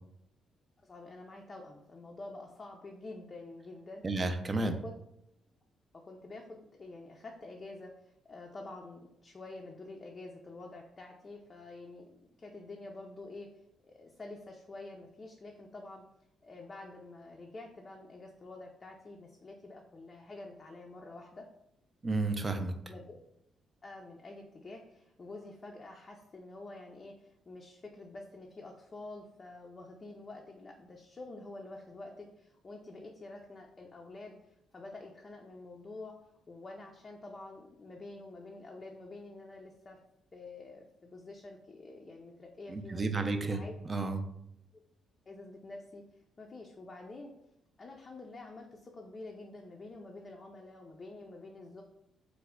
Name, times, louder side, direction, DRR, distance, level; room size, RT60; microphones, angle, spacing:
voice 1, 0.9-4.9 6.0-13.5 13.8-16.1 16.4-21.5 22.9-23.2 23.8-34.3 34.7-36.2 36.5-40.0 40.3-43.7 45.3-46.0 46.4-47.3 47.8-51.8, left 2 dB, 35° left, 0 dB, 0.4 m, -48 dB
voice 2, 4.0-4.7 22.0-22.7 42.7-43.6 43.9-44.2, right 3 dB, 30° right, 6 dB, 0.4 m, -31 dB
3.2 x 2.1 x 3.5 m, 0.80 s
cardioid pair, 90°, 0 cm